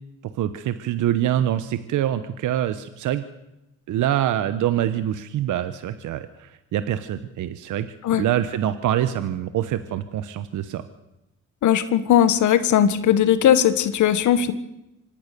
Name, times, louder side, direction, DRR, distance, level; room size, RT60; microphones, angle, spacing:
voice 1, 0.2-3.2 3.9-7.9 8.2-10.8, right 11 dB, 80° right, 11 dB, 1.2 m, -25 dB
voice 2, 11.6-14.5, left 10 dB, 75° left, 13 dB, 1.6 m, -18 dB
25.5 x 19.5 x 6.9 m, 0.92 s
cardioid pair, 90°, 30 cm